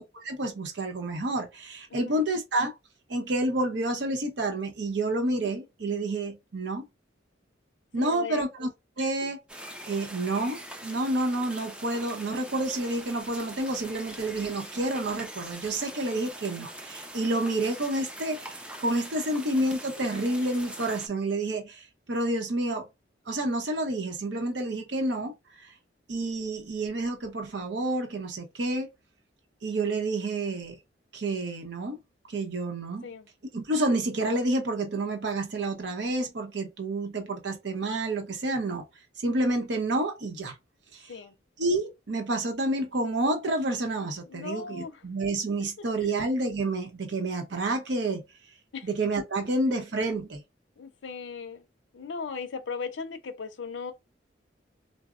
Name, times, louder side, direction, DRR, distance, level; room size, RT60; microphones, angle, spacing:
voice 1, 0.0-2.7 3.1-6.8 7.9-8.7 9.0-9.4 9.9-22.9 23.3-25.3 25.6-25.7 26.1-28.9 29.6-30.8 31.1-32.0 32.3-33.1 33.5-38.8 39.2-40.5 40.9-41.1 41.6-48.2 48.9-50.4, right 2 dB, 70° right, 0.7 m, -29 dB
voice 2, 1.9-2.3 8.0-8.5 9.0-9.1 16.1-16.3 20.4-20.5 33.0-33.3 41.1-41.3 44.3-45.0 48.7-48.9 50.8-51.6 51.9-53.9, left 5 dB, 75° left, 0.5 m, -38 dB
sound 1, 9.5-21.1, right 1 dB, 5° right, 0.3 m, -43 dB
3.9 x 2.0 x 2.3 m
head